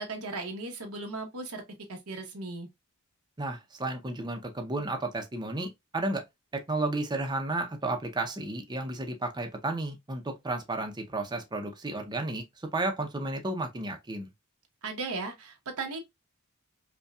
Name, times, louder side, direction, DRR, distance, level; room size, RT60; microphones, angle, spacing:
voice 1, 0.0-1.6 1.9-2.7 14.8-16.0, right 3 dB, 90° right, 1.1 m, -36 dB
voice 2, 3.4-6.2 6.5-12.4 12.7-14.3, right 2 dB, 20° right, 0.6 m, -32 dB
5.3 x 2.2 x 2.3 m
head